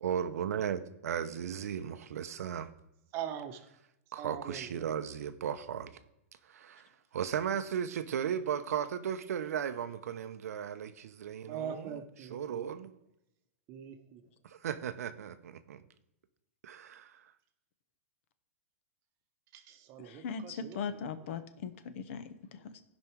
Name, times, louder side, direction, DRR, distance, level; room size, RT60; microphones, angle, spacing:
voice 1, 0.0-2.7 4.1-5.9 6.4-12.9 14.4-15.8 16.6-17.2, right 8 dB, 80° right, 11 dB, 0.7 m, -36 dB
voice 2, 3.1-3.6 4.2-4.8 11.5-12.7 13.7-14.2 19.5-20.8, right 8 dB, 35° right, 7 dB, 0.9 m, -42 dB
voice 3, 20.0-22.8, left 6 dB, 55° left, 11 dB, 1.0 m, -40 dB
16.0 x 5.3 x 4.6 m, 0.88 s
hypercardioid pair, 145°, 8 cm